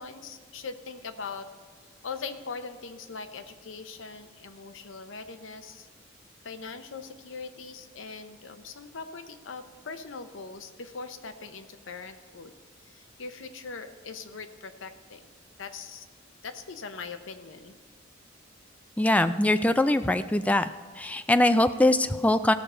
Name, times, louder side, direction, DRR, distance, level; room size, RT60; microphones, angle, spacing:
voice 1, 0.0-1.5 2.0-5.9 6.4-12.5 12.8-15.3 15.6-16.1 16.4-17.7, left 4 dB, 70° left, 9 dB, 0.8 m, -41 dB
voice 2, 19.0-20.7 21.0-22.5, left 1 dB, 5° left, 10 dB, 0.3 m, -22 dB
16.5 x 6.8 x 4.3 m, 1.5 s
head